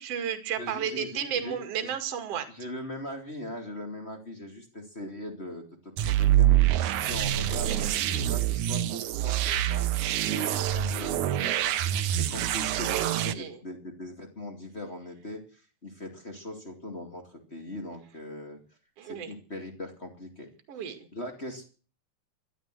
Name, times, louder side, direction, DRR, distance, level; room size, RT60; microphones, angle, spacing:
voice 1, 0.0-2.5 7.7-7.8 13.1-13.6 19.0-19.4 20.7-21.1, right 8 dB, 45° right, 7 dB, 2.7 m, -33 dB
voice 2, 0.6-1.9 2.3-6.6 7.0-9.9 10.3-18.6 19.0-20.5 21.1-21.6, left 1 dB, 20° left, 2 dB, 1.9 m, -40 dB
sound 1, 6.0-13.3, right 12 dB, 85° right, 1.7 m, -26 dB
12.5 x 12.5 x 7.7 m, 0.38 s
omnidirectional pair, 4.7 m